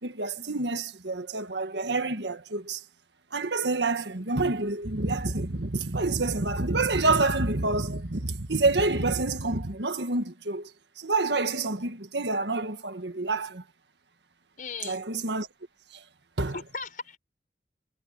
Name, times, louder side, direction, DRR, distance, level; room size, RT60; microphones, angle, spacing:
voice 1, 0.0-2.8 3.3-10.7 11.0-13.6 14.8-15.5 15.9-16.0 16.4-16.6, right 3 dB, 85° right, 1.7 m, -28 dB
voice 2, 14.6-15.0 16.5-17.2, left 4 dB, 50° left, 6.5 m, -37 dB
head